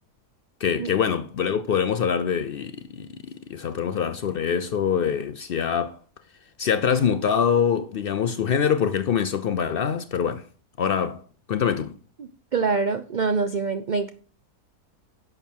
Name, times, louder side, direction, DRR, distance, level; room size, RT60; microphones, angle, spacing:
voice 1, 0.6-6.0 6.6-10.4 10.8-11.2 11.5-11.9, left 7 dB, 85° left, 0.5 m, -24 dB
voice 2, 12.2-14.1, right 4 dB, 45° right, 0.6 m, -25 dB
11.0 x 6.8 x 4.5 m
omnidirectional pair, 1.7 m